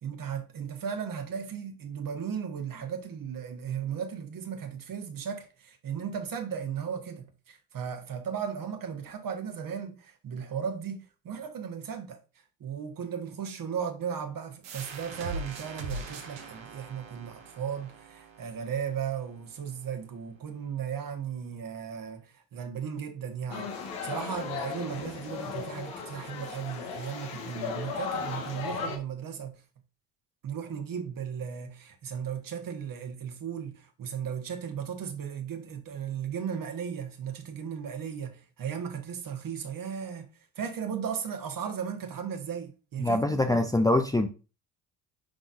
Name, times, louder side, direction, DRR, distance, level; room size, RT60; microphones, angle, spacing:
voice 1, 0.0-12.2 12.6-23.7 24.0-29.6 30.4-40.3 40.5-43.6, right 7 dB, 45° right, 1.6 m, -36 dB
sound 1, 14.6-20.0, right 3 dB, 70° right, 1.7 m, -42 dB
sound 2, 23.5-29.0, left 6 dB, 70° left, 1.7 m, -36 dB
voice 2, 43.0-44.3, left 2 dB, 10° left, 0.7 m, -24 dB
10.5 x 3.9 x 2.6 m
hypercardioid pair, 55°, 45 cm